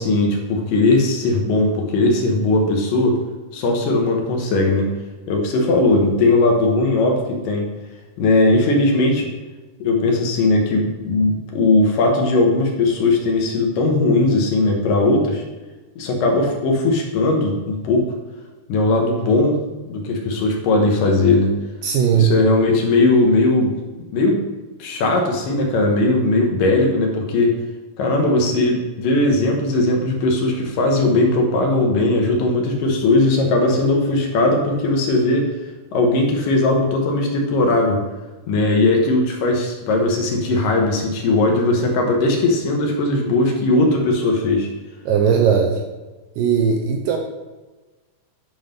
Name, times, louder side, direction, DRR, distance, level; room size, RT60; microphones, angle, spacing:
voice 1, 0.0-3.2 3.5-4.9 5.3-7.7 8.2-9.3 9.8-15.4 16.0-18.1 18.7-19.6 19.9-21.5 22.1-23.8 24.1-24.4 24.8-27.6 28.0-35.5 35.9-38.0 38.5-44.7, left 2 dB, 70° left, 1 dB, 2.5 m, -18 dB
voice 2, 21.8-22.3 45.1-45.8 46.4-47.2, right 7 dB, 80° right, 3 dB, 2.1 m, -17 dB
9.1 x 3.9 x 5.1 m, 1.2 s
omnidirectional pair, 4.4 m